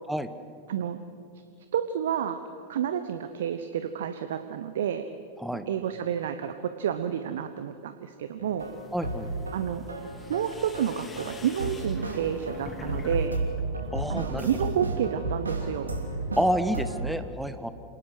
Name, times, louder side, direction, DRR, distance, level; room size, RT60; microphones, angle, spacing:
voice 1, 0.7-1.0 1.7-2.4 2.7-5.1 5.7-8.7 9.5-9.8 10.3-13.4 14.1-15.9, right 9 dB, 60° right, 10 dB, 0.9 m, -30 dB
sound 1, 8.4-9.6 9.9-11.3 11.6-17.0, right 2 dB, 75° right, 3.0 m, -33 dB
sound 2, 8.6-13.3 13.6-14.2, left 3 dB, 15° left, 1.9 m, -46 dB
voice 2, 8.9-9.3 13.9-14.5 16.4-17.7, equal, ahead, 11 dB, 1.2 m, -28 dB
27.0 x 19.0 x 6.3 m, 2.4 s
figure-of-eight pair, 90°, 0 cm